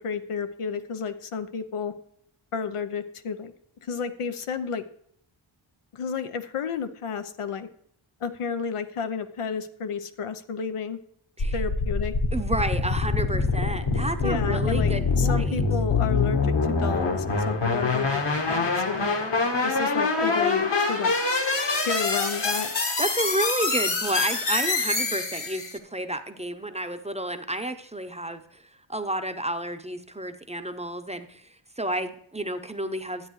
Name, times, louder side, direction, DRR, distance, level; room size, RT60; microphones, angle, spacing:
voice 1, 0.0-1.9 2.5-3.5 3.8-4.8 5.9-7.7 8.2-11.0 11.5-12.1 14.2-18.2 18.5-19.1 19.6-21.1 21.9-22.7, left 6 dB, 90° left, 9 dB, 0.8 m, -31 dB
sound 1, 11.4-25.8, left 3 dB, 55° left, 1.4 m, -25 dB
voice 2, 12.3-15.6 23.0-28.6 28.9-31.4 31.8-33.3, right 1 dB, 15° right, 7 dB, 0.7 m, -31 dB
12.5 x 8.6 x 3.1 m, 0.68 s
wide cardioid pair, 85°, 50 cm